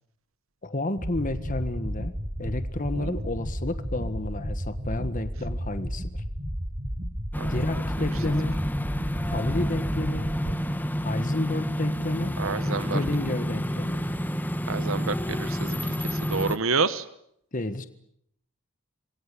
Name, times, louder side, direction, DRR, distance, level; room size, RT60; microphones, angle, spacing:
voice 1, 0.6-2.1 2.4-6.2 7.5-8.6 9.2-10.3 11.0-12.4 12.9-14.0 17.5-17.9, left 2 dB, 40° left, 10 dB, 1.6 m, -31 dB
sound 1, 1.0-10.5, equal, 25° right, 2.6 m, -33 dB
sound 2, 7.3-16.6, equal, 10° left, 1.2 m, -29 dB
sound 3, 8.4-12.5 13.0-16.1, equal, 75° left, 4.5 m, -47 dB
voice 2, 12.4-13.0 14.7-17.0, right 4 dB, 70° right, 13 dB, 1.2 m, -29 dB
28.0 x 22.5 x 8.5 m, 0.74 s
head